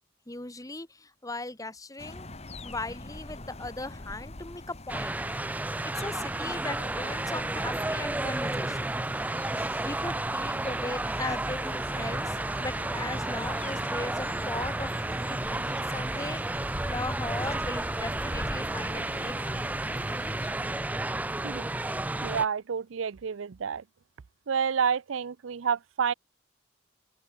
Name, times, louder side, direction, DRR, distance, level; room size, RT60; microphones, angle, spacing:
voice 1, 0.3-2.3 2.6-5.2 6.0-9.0 9.4-16.5 16.8-19.3 19.6-20.0, left 2 dB, 15° left, 1.8 m, -38 dB
sound 1, 2.0-20.5, left 2 dB, 35° left, 1.9 m, -44 dB
sound 2, 4.9-22.5, right 2 dB, 10° right, 0.3 m, -32 dB
voice 2, 22.2-23.8 24.5-26.1, right 7 dB, 85° right, 0.5 m, -29 dB
open air
head